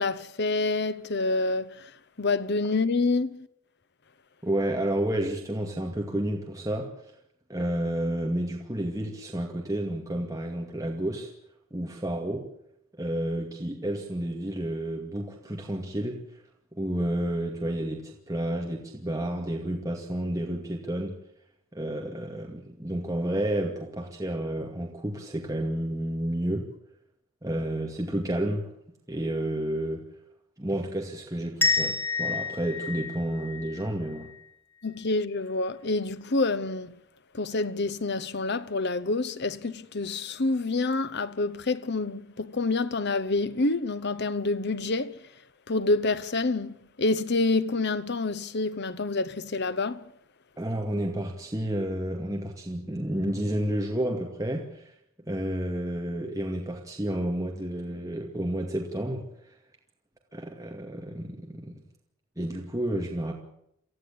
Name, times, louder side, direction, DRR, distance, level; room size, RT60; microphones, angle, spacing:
voice 1, 0.0-1.9 2.2-3.5 34.8-37.0 37.3-45.2 45.7-50.1, left 3 dB, 55° left, 1.1 m, -27 dB
voice 2, 4.4-7.1 7.5-11.3 11.7-12.4 13.0-16.4 16.7-21.2 21.7-26.7 27.4-28.7 29.1-30.0 30.6-34.3 50.6-54.9 55.3-59.5 60.3-61.8 62.4-63.3, right 1 dB, 15° right, 2.3 m, -31 dB
sound 1, 31.6-34.4, left 4 dB, 10° left, 4.1 m, -29 dB
24.5 x 15.0 x 8.8 m
head